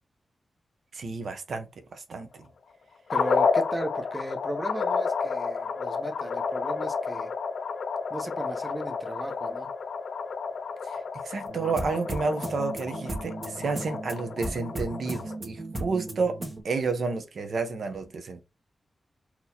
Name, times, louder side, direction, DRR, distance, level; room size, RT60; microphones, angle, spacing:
voice 1, 0.9-2.3 10.8-16.4 16.6-18.4, right 4 dB, 75° right, 0.6 m, -31 dB
sound 1, 3.1-15.4, left 5 dB, 90° left, 0.4 m, -31 dB
voice 2, 3.1-7.3 8.1-9.7, right 1 dB, 15° right, 0.8 m, -36 dB
sound 2, 11.5-16.6, right 2 dB, 40° right, 1.4 m, -36 dB
3.9 x 2.9 x 2.7 m
cardioid pair, 70°, 0 cm